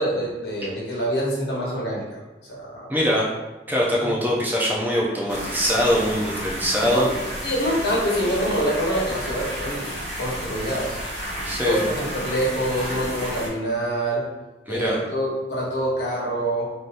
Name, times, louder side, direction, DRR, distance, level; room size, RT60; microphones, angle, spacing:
voice 1, 0.0-2.2 2.5-2.9 4.0-4.2 6.8-7.0 7.4-9.9 10.2-11.0 11.6-14.2 14.7-16.6, equal, 80° left, -5 dB, 1.0 m, -25 dB
voice 2, 2.9-3.3 3.7-7.1 11.4-11.8 14.7-15.0, equal, 10° right, -4 dB, 0.4 m, -22 dB
sound 1, 5.3-13.5, equal, 60° right, 1.1 m, -32 dB
3.4 x 2.7 x 2.5 m, 1.1 s
head